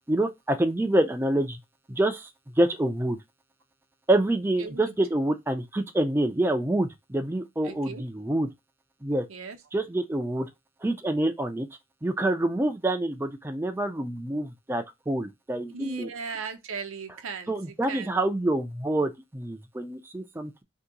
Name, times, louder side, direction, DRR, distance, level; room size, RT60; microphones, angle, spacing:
voice 1, 0.1-1.6 1.9-2.3 2.6-3.2 4.1-8.5 9.0-9.2 9.7-10.5 10.8-11.7 12.0-16.1 17.5-20.6, right 1 dB, 10° right, 0.4 m, -27 dB
voice 2, 4.6-4.9 7.6-8.0 9.3-9.6 15.7-18.2, right 5 dB, 80° right, 0.6 m, -37 dB
2.8 x 2.7 x 3.7 m
head